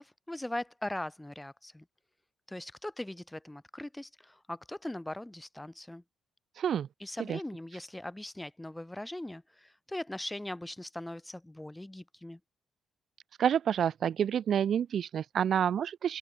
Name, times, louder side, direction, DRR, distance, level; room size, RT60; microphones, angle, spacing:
voice 1, 0.0-1.8 2.5-6.0 7.0-12.4, left 1 dB, 10° left, 2.3 m, -40 dB
voice 2, 6.6-6.9 7.3-7.4 13.4-16.2, right 8 dB, 60° right, 1.2 m, -28 dB
open air
cardioid pair, 90°, 0 cm